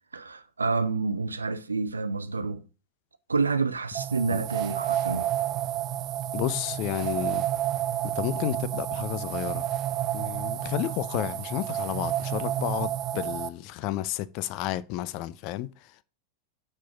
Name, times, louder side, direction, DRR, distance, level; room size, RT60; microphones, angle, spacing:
voice 1, 0.1-2.6 3.3-5.3, right 4 dB, 75° right, 0.6 m, -28 dB
sound 1, 3.9-13.5, right 12 dB, 35° right, 0.4 m, -30 dB
voice 2, 6.3-7.4 8.0-9.7 10.1-16.0, left 14 dB, 45° left, 0.5 m, -32 dB
6.2 x 4.4 x 5.7 m
figure-of-eight pair, 90°, 0 cm